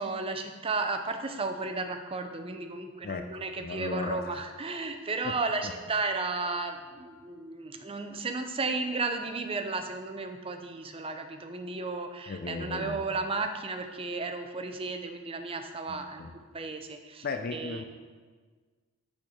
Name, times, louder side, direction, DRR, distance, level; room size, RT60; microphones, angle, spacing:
voice 1, 0.0-16.2 16.5-17.3 17.5-17.8, right 3 dB, 25° right, 6 dB, 0.6 m, -34 dB
voice 2, 3.0-4.4 5.2-5.4 5.6-5.7 12.3-13.0 15.9-16.3 17.2-17.8, left 3 dB, 45° left, 7 dB, 0.4 m, -36 dB
8.8 x 4.4 x 6.3 m, 1.5 s
head